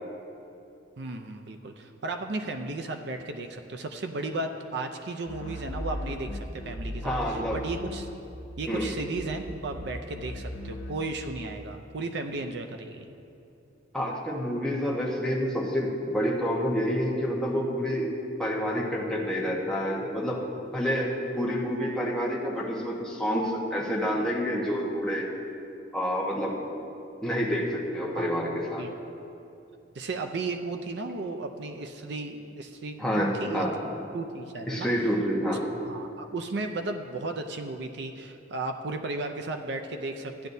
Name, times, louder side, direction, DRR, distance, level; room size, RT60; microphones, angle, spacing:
voice 1, 1.0-6.3 6.6-8.1 8.6-13.0 28.1-28.4 28.8-28.9 29.9-33.7 34.1-34.9 35.8-40.5, right 2 dB, 60° right, 5 dB, 0.5 m, -35 dB
sound 1, 5.3-8.3 8.6-11.2, left 1 dB, 85° left, 0.7 m, -38 dB
voice 2, 7.0-7.6 8.7-9.0 13.9-18.1 18.4-20.4 20.7-25.3 25.9-26.6 27.2-28.9 33.0-33.7 34.7-35.6, equal, 5° left, -4 dB, 1.2 m, -28 dB
15.0 x 10.0 x 2.7 m, 2.7 s
head